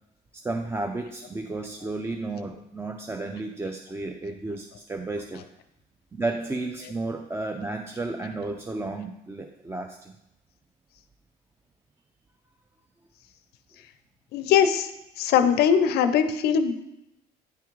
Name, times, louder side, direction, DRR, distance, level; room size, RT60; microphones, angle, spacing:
voice 1, 0.4-5.4 6.1-10.1, right 2 dB, 15° right, 4 dB, 0.4 m, -32 dB
voice 2, 14.3-14.9 15.2-16.8, left 8 dB, 70° left, 9 dB, 0.5 m, -21 dB
9.2 x 3.5 x 3.1 m, 0.87 s
cardioid pair, 110°, 17 cm